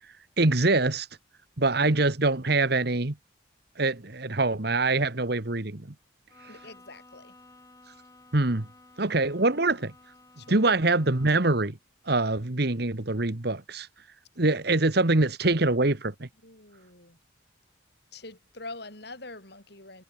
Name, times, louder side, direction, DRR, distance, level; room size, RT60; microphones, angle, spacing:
voice 1, 0.4-1.1 1.6-3.2 3.8-5.9 8.3-8.7 9.0-9.9 10.5-11.8 12.1-13.9 14.4-16.3, right 2 dB, 55° right, 1.5 m, -24 dB
Bowed string instrument, 6.3-11.8, left 2 dB, 20° left, 6.6 m, -54 dB
voice 2, 6.5-7.3 10.4-10.6 16.4-17.2 18.1-20.0, left 2 dB, 55° left, 6.6 m, -44 dB
head